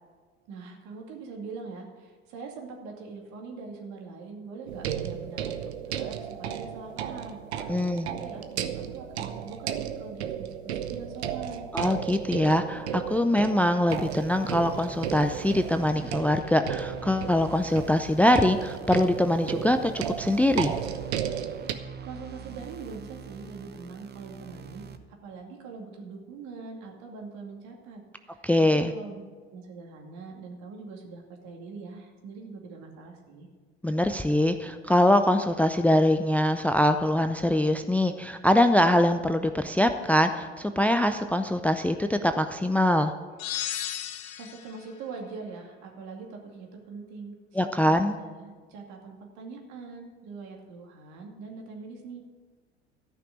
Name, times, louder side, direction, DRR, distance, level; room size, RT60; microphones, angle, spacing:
voice 1, 0.5-11.7 22.0-28.4 28.7-29.2 29.5-33.5 44.4-52.2, right 4 dB, 60° right, 1 dB, 2.4 m, -43 dB
sound 1, 4.7-21.7, right 9 dB, 80° right, 0.8 m, -34 dB
voice 2, 7.7-8.1 11.7-20.8 28.4-28.9 33.8-43.1 47.6-48.2, left 1 dB, 5° left, 8 dB, 0.5 m, -23 dB
sound 2, 13.9-25.0, right 7 dB, 30° right, 1.0 m, -44 dB
sound 3, 43.4-44.8, left 11 dB, 60° left, 1.1 m, -34 dB
13.5 x 5.9 x 8.2 m, 1.5 s
hypercardioid pair, 70°, 32 cm